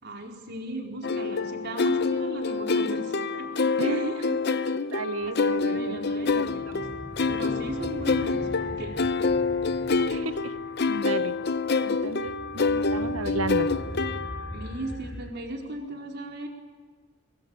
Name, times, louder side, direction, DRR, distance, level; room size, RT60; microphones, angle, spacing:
voice 1, 0.0-4.4 5.2-6.9 7.3-9.0 14.5-16.5, right 1 dB, 50° right, 2 dB, 4.5 m, -37 dB
sound 1, 1.0-14.6, left 4 dB, 50° left, 0.8 m, -27 dB
voice 2, 3.8-4.1 4.9-6.0 10.1-10.6 10.9-11.3 11.8-13.7, right 3 dB, 80° right, 14 dB, 1.1 m, -33 dB
sound 2, 5.2-15.3, equal, 10° left, 2.9 m, -42 dB
23.5 x 23.0 x 8.8 m, 1.4 s
head